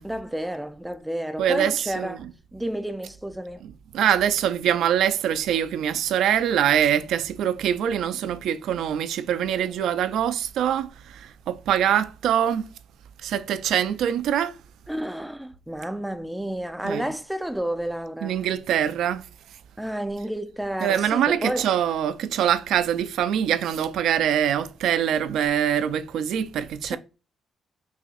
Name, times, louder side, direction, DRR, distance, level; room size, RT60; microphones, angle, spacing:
voice 1, 0.0-2.3 2.5-3.6 14.9-18.4 19.8-21.7 26.8-27.0, right 1 dB, 5° right, 0.4 m, -30 dB
voice 2, 1.4-2.2 3.9-12.7 13.2-14.6 16.8-17.0 18.2-19.3 20.8-27.0, right 9 dB, 80° right, 0.3 m, -24 dB
5.6 x 2.6 x 2.4 m
cardioid pair, 140°, 0 cm